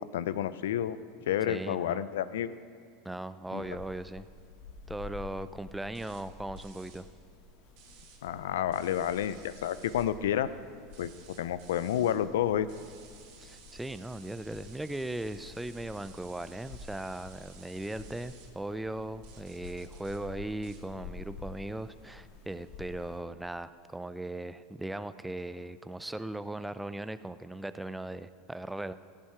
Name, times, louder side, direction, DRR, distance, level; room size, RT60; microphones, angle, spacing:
voice 1, 0.1-1.0 1.3-2.6 3.5-3.7 8.2-10.5 11.0-12.7, left 10 dB, 85° left, 15 dB, 0.4 m, -30 dB
voice 2, 1.5-2.0 3.0-4.3 4.9-7.1 13.4-28.9, right 1 dB, 5° right, 13 dB, 0.4 m, -38 dB
sound 1, 3.6-23.2, left 4 dB, 65° left, 1.8 m, -50 dB
sound 2, 5.9-6.2 6.6-7.0 7.8-8.2 8.7-10.1 10.9-12.2 12.7-18.5 19.2-20.2 20.6-20.8, right 6 dB, 65° right, 2.0 m, -56 dB
15.0 x 7.5 x 4.9 m, 2.2 s
supercardioid pair, 115°, 0 cm